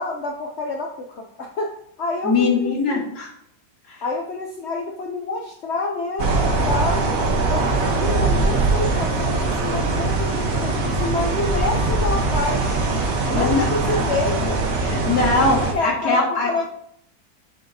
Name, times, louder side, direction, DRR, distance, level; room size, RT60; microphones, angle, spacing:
voice 1, 0.0-3.1 4.0-7.1 7.5-12.7 13.3-14.6 15.7-16.7, left 3 dB, 55° left, 0 dB, 0.9 m, -28 dB
voice 2, 2.2-3.3 3.9-4.0 13.3-13.9 14.7-16.7, left 3 dB, 70° left, -4 dB, 2.2 m, -22 dB
sound 1, 6.2-15.7, right 3 dB, 65° right, 1.5 m, -22 dB
sound 2, 11.2-12.4 13.6-13.9 14.1-14.4, equal, 20° left, 2.2 m, -29 dB
7.6 x 7.2 x 2.7 m, 0.69 s
omnidirectional pair, 1.6 m